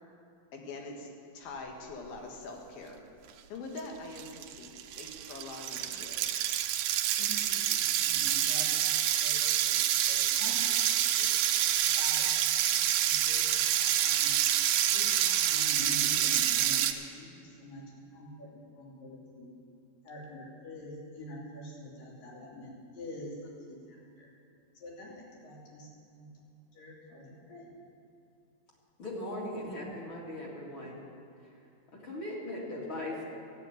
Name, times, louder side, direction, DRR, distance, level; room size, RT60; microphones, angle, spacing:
voice 1, 0.5-1.1 1.3-3.0 3.5-6.2, left 3 dB, 85° left, 1 dB, 3.4 m, -43 dB
sound 1, 3.8-3.9 4.2-16.9, right 11 dB, 75° right, 2.0 m, -27 dB
voice 2, 7.2-9.4 9.7-11.3 11.8-14.6 14.8-19.5 20.0-24.3 24.7-25.9 26.1-26.3 26.7-27.7, left 1 dB, 70° left, -4 dB, 4.4 m, -46 dB
voice 3, 29.0-31.0 31.9-33.2, left 1 dB, 40° left, -4 dB, 2.6 m, -38 dB
13.5 x 8.3 x 9.2 m, 2.5 s
omnidirectional pair, 4.1 m